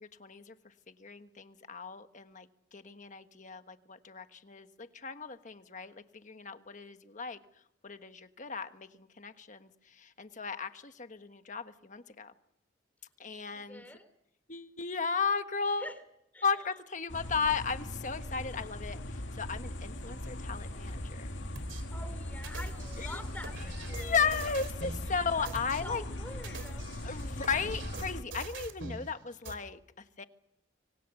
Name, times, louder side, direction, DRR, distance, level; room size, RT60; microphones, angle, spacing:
voice 1, 0.0-0.5 1.0-2.5 2.7-7.4 7.8-12.3 13.2-13.8 14.5-15.9 16.4-21.3 23.0-23.2 23.9-26.0 27.0-29.8 30.2-30.3, left 5 dB, 40° left, 9 dB, 1.3 m, -35 dB
voice 2, 13.5-14.1 15.8-16.0 16.3-16.7 21.9-24.3 25.0-25.5 25.8-27.2, left 1 dB, 10° left, 10 dB, 3.3 m, -47 dB
sound 1, 17.1-28.2, left 1 dB, 75° left, 2.4 m, -40 dB
sound 2, 21.5-21.8 22.4-25.0 25.4-25.8 26.3-29.0 29.4-29.5, right 3 dB, 70° right, 3.3 m, -44 dB
25.5 x 25.0 x 6.8 m, 0.78 s
head